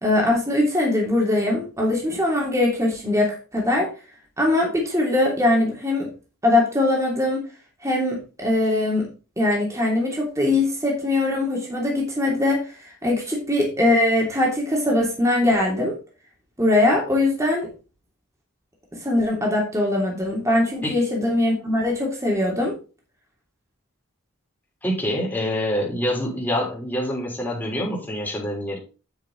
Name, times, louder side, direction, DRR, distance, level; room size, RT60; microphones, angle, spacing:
voice 1, 0.0-3.9 4.4-6.1 6.4-7.4 7.8-9.1 9.4-12.6 13.0-15.9 16.6-17.7 19.0-22.7, left 2 dB, 15° right, -2 dB, 2.9 m, -21 dB
voice 2, 24.8-28.8, equal, 10° left, -4 dB, 3.5 m, -26 dB
9.0 x 6.5 x 4.0 m, 0.33 s
head